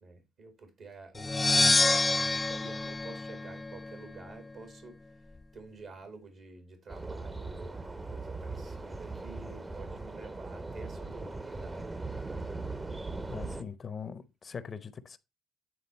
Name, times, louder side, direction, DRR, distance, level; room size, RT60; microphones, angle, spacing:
voice 1, 0.0-12.0, right 4 dB, 65° right, 1.9 m, -50 dB
sound 1, 1.2-4.0, left 3 dB, 25° left, 0.3 m, -27 dB
sound 2, 6.9-13.6, right 3 dB, 25° right, 0.8 m, -39 dB
voice 2, 13.3-15.2, left 6 dB, 45° left, 0.8 m, -41 dB
8.9 x 3.9 x 4.3 m
supercardioid pair, 60°, 0 cm